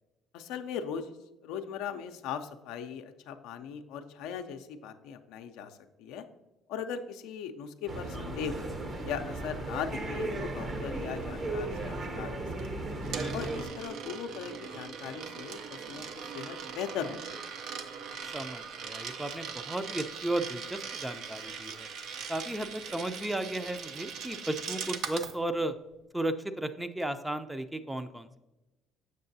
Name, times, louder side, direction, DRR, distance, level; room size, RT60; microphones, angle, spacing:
voice 1, 0.3-1.1 1.4-6.3 6.7-8.7 9.0-12.4 12.8-12.9 13.3-17.5, left 7 dB, 80° left, 7 dB, 0.4 m, -39 dB
sound 1, 7.9-13.7, right 2 dB, 40° right, 0.9 m, -36 dB
Coin (dropping), 12.6-25.4, right 6 dB, 70° right, 0.6 m, -40 dB
voice 2, 13.0-13.6 18.3-21.9 22.3-25.7 26.1-28.4, right 1 dB, 10° right, 9 dB, 0.5 m, -35 dB
6.9 x 6.5 x 2.7 m, 1.0 s
supercardioid pair, 70°, 0 cm